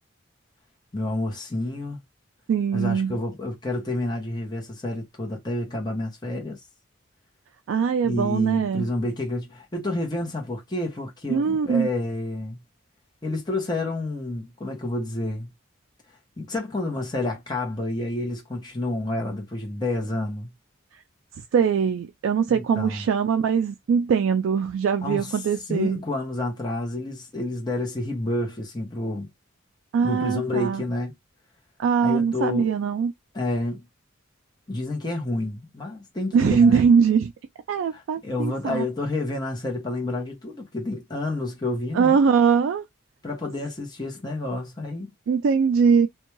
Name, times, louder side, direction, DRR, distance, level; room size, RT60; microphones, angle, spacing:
voice 1, 0.9-2.0 2.7-6.6 8.0-12.6 13.2-15.5 16.4-20.5 22.5-23.0 25.0-29.3 30.0-31.1 32.0-32.7 33.3-33.8 34.7-36.9 37.9-42.2 43.2-45.1, left 2 dB, 20° left, 0.8 m, -29 dB
voice 2, 2.5-3.2 7.7-8.9 11.3-11.9 21.5-26.0 29.9-30.8 31.8-33.1 36.3-37.3 37.7-38.8 41.9-42.8 45.3-46.1, right 6 dB, 70° right, 0.3 m, -21 dB
2.6 x 2.2 x 3.0 m
head